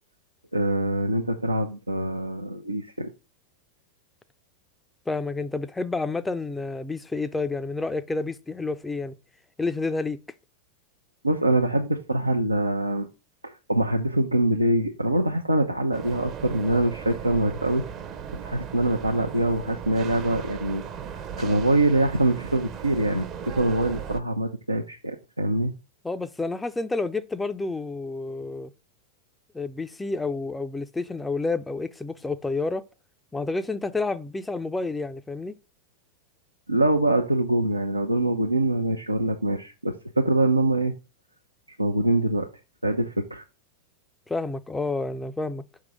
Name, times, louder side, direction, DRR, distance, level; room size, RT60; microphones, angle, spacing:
voice 1, 0.5-3.1 11.2-13.1 13.4-17.8 18.3-20.8 21.4-25.7 36.7-40.9 41.8-42.5 42.8-43.4, right 1 dB, 85° right, 0.6 m, -24 dB
voice 2, 5.1-9.1 9.6-10.2 26.0-28.7 29.5-32.8 33.3-35.6 44.3-45.6, left 3 dB, 10° left, 0.5 m, -29 dB
sound 1, 15.9-24.2, right 7 dB, 30° right, 0.7 m, -37 dB
6.0 x 3.8 x 4.8 m
figure-of-eight pair, 90°, 0 cm